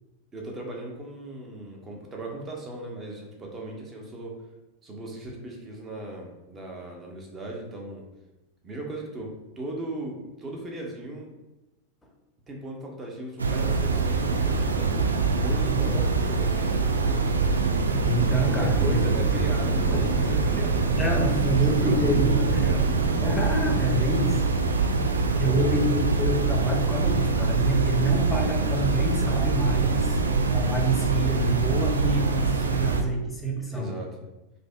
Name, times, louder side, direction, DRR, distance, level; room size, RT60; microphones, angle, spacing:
voice 1, 0.3-4.3 4.8-8.0 8.6-11.3 12.5-15.1 15.3-17.8 18.5-20.9 21.6-22.9 29.8-30.2 33.7-34.2, right 2 dB, 20° right, 0 dB, 0.7 m, -37 dB
sound 1, 13.4-33.0, right 4 dB, 75° right, 0.3 m, -24 dB
voice 2, 15.7-16.0 18.0-19.0 19.9-20.0 21.0-22.4 23.2-24.4 25.4-30.2 30.5-33.9, right 1 dB, 10° left, -1 dB, 0.7 m, -27 dB
sound 2, 17.4-23.8, right 4 dB, 50° right, 1.0 m, -30 dB
5.0 x 2.1 x 2.3 m, 1.0 s
figure-of-eight pair, 90°, 0 cm